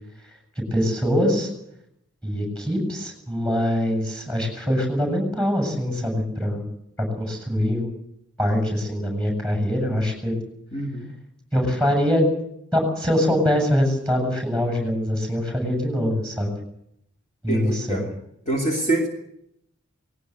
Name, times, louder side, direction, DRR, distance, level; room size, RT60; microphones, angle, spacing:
voice 1, 0.7-1.5 2.2-6.6 7.0-7.9 8.4-10.4 11.5-12.3 12.7-16.5 17.4-18.0, equal, 5° left, 3 dB, 7.8 m, -23 dB
voice 2, 10.7-11.1 17.5-18.1 18.5-19.1, right 2 dB, 30° left, 0 dB, 2.5 m, -25 dB
20.0 x 18.0 x 8.1 m, 0.78 s
head